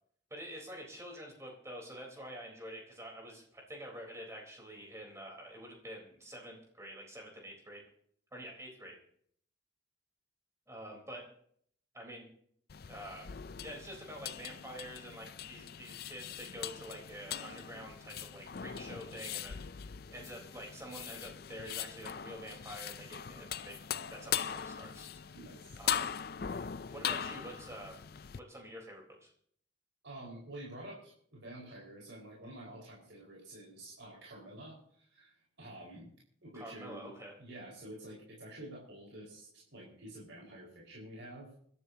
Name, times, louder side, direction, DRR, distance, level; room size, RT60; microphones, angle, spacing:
voice 1, 0.3-7.8 8.3-9.0 10.7-11.3 11.9-12.3 12.9-13.3 13.6-19.8 20.1-23.8 24.1-25.1 25.8-26.1 26.9-28.0 28.4-29.3 36.5-37.3, equal, 15° right, 0 dB, 4.0 m, -47 dB
sound 1, 12.7-28.4, left 8 dB, 55° left, 0.5 m, -41 dB
voice 2, 25.3-25.8 30.0-36.1 36.4-37.1 37.4-41.5, right 1 dB, 80° right, -4 dB, 4.9 m, -49 dB
27.5 x 12.5 x 2.8 m, 0.63 s
head